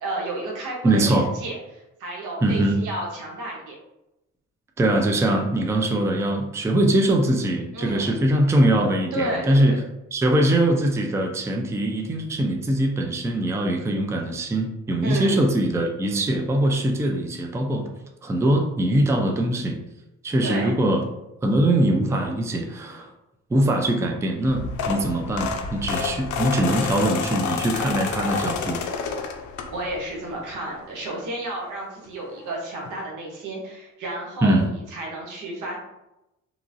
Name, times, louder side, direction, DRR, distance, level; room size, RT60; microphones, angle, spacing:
voice 1, 0.0-3.8 7.7-8.3 9.1-9.8 15.0-15.4 20.4-20.7 29.7-35.8, right 1 dB, 85° right, -2 dB, 1.0 m, -32 dB
voice 2, 0.8-1.3 2.4-2.8 4.8-9.7 10.1-17.9 18.2-19.8 20.2-21.0 21.4-23.1 23.5-28.8 34.4-34.7, right 1 dB, 10° right, 2 dB, 0.3 m, -22 dB
sound 1, 24.4-30.1 30.5-30.8 32.0-32.1 32.4-32.5 32.8-32.9, left 5 dB, 75° left, 0.4 m, -29 dB
3.0 x 2.4 x 2.5 m, 0.91 s
cardioid pair, 90°, 30 cm